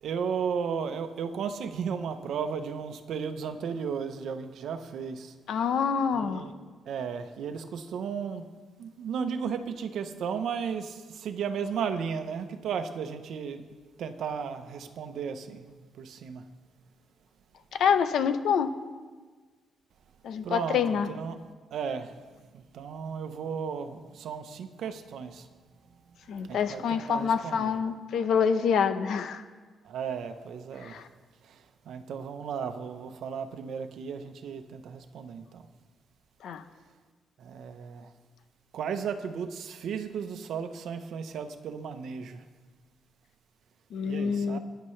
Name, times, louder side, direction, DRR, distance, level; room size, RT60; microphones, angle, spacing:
voice 1, 0.0-5.3 6.1-6.5 6.8-8.4 8.8-13.6 14.0-15.7 16.0-16.4 20.4-20.8 21.1-21.4 21.7-22.1 22.5-25.5 26.5-27.7 29.8-31.0 31.5-35.7 37.4-38.1 38.7-42.4 44.1-44.6, right 6 dB, 65° right, 8 dB, 0.9 m, -34 dB
voice 2, 5.5-6.5 17.7-18.7 20.2-21.1 26.3-29.4 30.8-31.1 36.4-36.6 43.9-44.6, left 7 dB, 65° left, 10 dB, 0.8 m, -26 dB
23.0 x 10.5 x 3.3 m, 1.4 s
cardioid pair, 170°, 0 cm